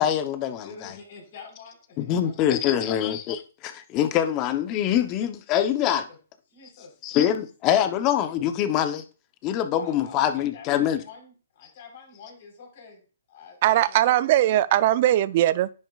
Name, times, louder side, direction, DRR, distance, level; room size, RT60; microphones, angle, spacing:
voice 1, 0.0-0.9 2.0-6.1 7.0-9.0 9.4-11.0, left 10 dB, 30° left, 0.8 m, -24 dB
voice 2, 0.6-2.9 6.1-6.2 6.5-7.4 9.7-13.0 13.3-14.2, left 5 dB, 50° left, 4.2 m, -47 dB
voice 3, 13.6-15.7, right 13 dB, 45° right, 0.5 m, -20 dB
10.0 x 6.0 x 2.4 m
hypercardioid pair, 140°, 0 cm